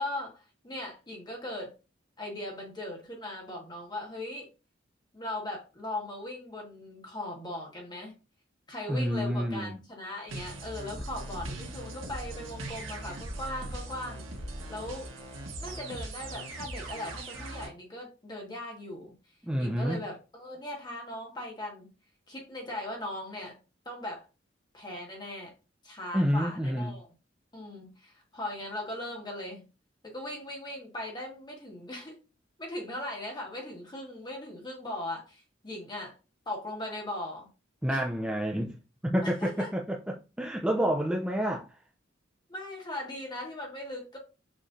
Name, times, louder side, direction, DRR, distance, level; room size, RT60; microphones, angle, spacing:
voice 1, 0.0-1.7 2.2-4.5 5.1-8.1 8.7-14.2 14.7-15.1 15.6-19.1 19.6-21.9 22.3-23.6 23.8-24.2 24.7-25.5 25.8-27.1 27.5-29.7 30.0-32.2 32.6-36.1 36.4-37.5 37.9-38.0 39.2-39.7 42.5-44.2, left 1 dB, 25° left, 1.6 m, -39 dB
voice 2, 8.9-9.8 19.4-20.0 26.1-26.9 37.8-38.8 39.0-41.7, equal, 5° right, 0.4 m, -29 dB
sound 1, 10.3-17.7, right 1 dB, 90° right, 1.3 m, -40 dB
6.2 x 3.1 x 2.6 m
head